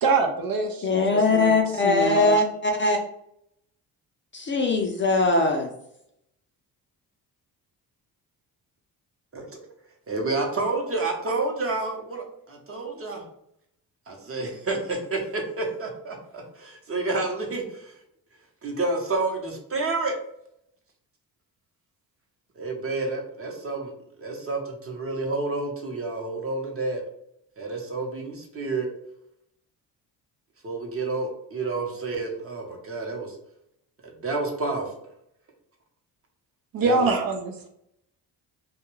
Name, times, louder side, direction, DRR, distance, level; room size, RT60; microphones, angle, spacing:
voice 1, 0.0-2.4 36.7-37.7, right 3 dB, 55° right, 4 dB, 0.6 m, -25 dB
voice 2, 0.8-3.0 4.3-5.7, left 3 dB, 30° left, 2 dB, 0.5 m, -21 dB
voice 3, 10.1-13.2 14.1-18.0 18.6-20.1 22.6-23.9 24.2-27.0 27.6-28.9 30.6-33.3 34.0-34.9 36.8-37.0, right 3 dB, 35° right, 1 dB, 0.8 m, -29 dB
2.3 x 2.2 x 3.0 m, 0.74 s
cardioid pair, 80°, 41 cm